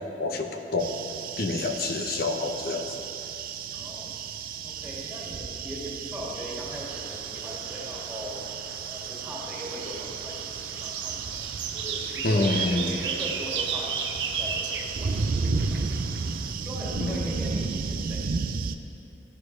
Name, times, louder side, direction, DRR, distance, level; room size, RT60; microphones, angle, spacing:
voice 1, 0.2-1.0 1.4-2.9 12.2-13.0 17.0-17.3, left 2 dB, 60° left, 5 dB, 0.8 m, -27 dB
sound 1, 0.8-18.7, right 5 dB, 55° right, 0.5 m, -33 dB
voice 2, 3.7-4.1 4.6-8.4 8.8-11.1 11.7-14.0 14.3-15.4 15.7-15.8 16.5-18.2, equal, 10° right, -6 dB, 2.1 m, -39 dB
sound 2, 6.7-16.5, right 6 dB, 85° right, 0.8 m, -35 dB
15.0 x 9.4 x 3.3 m, 3.0 s
head